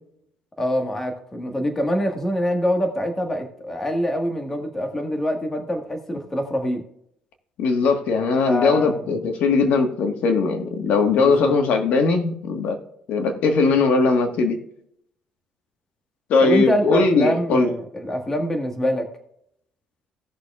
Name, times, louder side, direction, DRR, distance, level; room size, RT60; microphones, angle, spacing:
voice 1, 0.6-6.8 8.4-9.3 11.2-11.5 16.4-19.1, equal, 15° left, 1.6 m, -25 dB
voice 2, 7.6-12.8 13.1-14.6 16.3-17.7, left 4 dB, 70° left, 1.4 m, -19 dB
17.5 x 6.5 x 2.4 m
cardioid pair, 135°, 3 cm